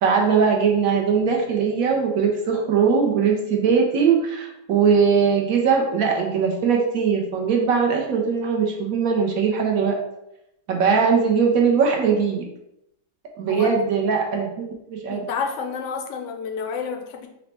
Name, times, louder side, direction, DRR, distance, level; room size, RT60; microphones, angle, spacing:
voice 1, 0.0-10.0 10.7-12.4 13.4-14.6 14.9-15.2, right 6 dB, 70° right, 1 dB, 0.9 m, -20 dB
voice 2, 15.1-17.3, left 5 dB, 75° left, 3 dB, 0.7 m, -29 dB
4.1 x 2.1 x 4.1 m, 0.85 s
omnidirectional pair, 1.8 m